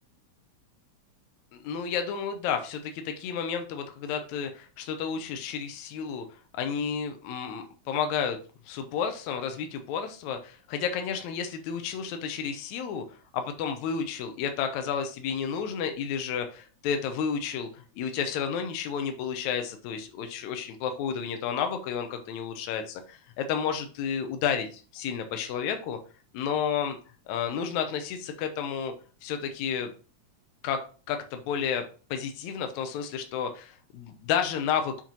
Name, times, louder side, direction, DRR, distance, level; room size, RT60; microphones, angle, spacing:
voice 1, 1.6-6.3 6.6-8.4 8.7-26.0 26.3-27.0 27.3-28.9 29.2-29.9 30.6-30.8 31.1-34.9, left 7 dB, 75° left, 6 dB, 2.1 m, -31 dB
7.4 x 3.0 x 5.2 m, 0.37 s
omnidirectional pair, 3.4 m